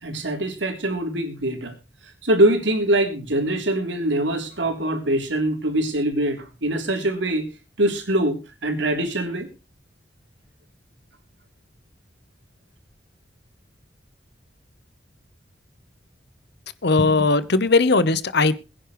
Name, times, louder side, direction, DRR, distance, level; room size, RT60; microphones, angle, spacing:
voice 1, 0.0-1.7 2.2-7.5 7.8-9.5, right 1 dB, 75° right, 5 dB, 3.4 m, -23 dB
voice 2, 16.8-18.7, left 3 dB, 65° left, 15 dB, 1.0 m, -19 dB
22.0 x 10.0 x 3.2 m, 0.31 s
head